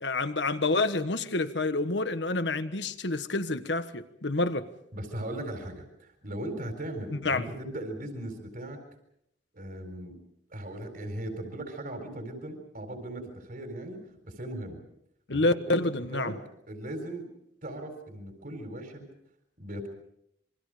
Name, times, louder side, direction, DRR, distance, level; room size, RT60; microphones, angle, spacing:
voice 1, 0.0-4.7 7.1-7.4 15.3-16.4, left 2 dB, 70° left, 1.4 m, -28 dB
voice 2, 4.9-8.8 9.5-10.1 10.5-14.8 15.3-16.3 16.7-17.3 17.6-19.1 19.6-19.9, right 1 dB, 50° right, 4.2 m, -38 dB
27.5 x 23.5 x 5.1 m
head